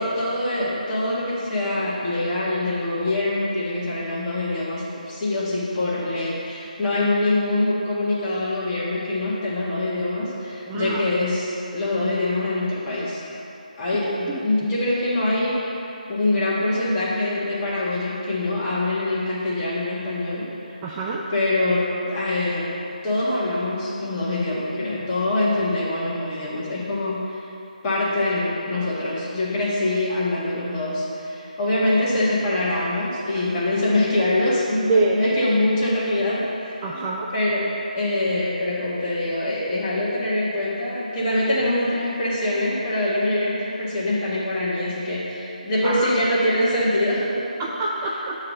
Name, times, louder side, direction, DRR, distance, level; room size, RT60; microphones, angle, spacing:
voice 1, 0.0-13.2 13.8-15.8 16.1-20.8 21.3-22.7 23.0-27.4 27.8-37.0 37.3-47.4, left 1 dB, 20° left, -8 dB, 1.6 m, -24 dB
voice 2, 10.7-11.0 13.9-14.0 14.3-14.4 20.8-21.2 34.9-35.2 36.8-37.3 45.8-46.1 47.6-48.5, right 3 dB, 15° right, -4 dB, 0.3 m, -25 dB
8.4 x 3.3 x 6.3 m, 2.9 s
figure-of-eight pair, 155°, 5 cm